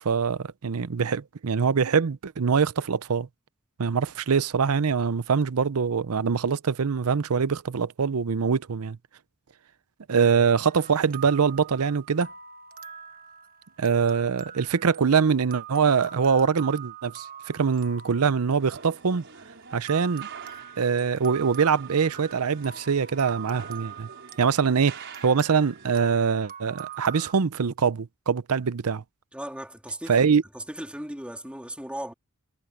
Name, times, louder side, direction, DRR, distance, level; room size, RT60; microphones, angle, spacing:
voice 1, 0.0-3.3 3.8-9.0 10.1-12.3 13.8-19.2 19.7-20.3 20.8-24.1 24.4-29.0 30.1-30.4, right 6 dB, 85° right, 0.6 m, -23 dB
sound 1, 10.6-19.3 19.9-27.3, right 9 dB, 40° right, 1.3 m, -44 dB
sound 2, 18.6-26.0, right 5 dB, 55° right, 5.6 m, -47 dB
voice 2, 29.3-32.1, right 1 dB, 5° right, 3.1 m, -37 dB
head